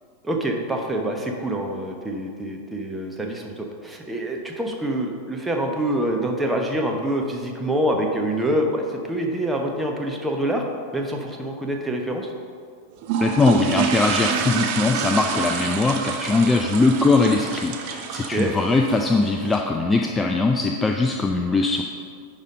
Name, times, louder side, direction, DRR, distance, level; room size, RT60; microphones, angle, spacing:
voice 1, 0.2-10.6 10.9-12.3 18.2-18.5, right 1 dB, 10° right, 2 dB, 1.0 m, -26 dB
sound 1, 13.0-19.6, right 7 dB, 45° right, 0.7 m, -28 dB
voice 2, 13.2-21.8, left 3 dB, 15° left, 3 dB, 0.4 m, -21 dB
10.5 x 4.1 x 5.1 m, 2.2 s
figure-of-eight pair, 90°, 0 cm